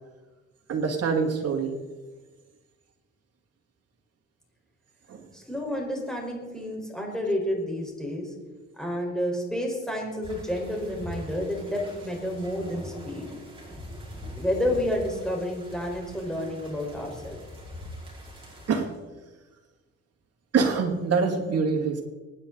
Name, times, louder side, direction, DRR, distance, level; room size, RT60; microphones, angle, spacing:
voice 1, 0.7-1.8 5.1-5.3 18.7-18.9 20.5-22.0, right 5 dB, 55° right, 2 dB, 2.6 m, -25 dB
voice 2, 5.3-8.3 8.7-13.3 14.4-17.4, left 1 dB, ahead, -1 dB, 4.6 m, -30 dB
sound 1, 10.2-18.8, left 1 dB, 15° right, 5.0 m, -42 dB
24.5 x 9.9 x 4.0 m, 1.3 s
cardioid pair, 90°, 30 cm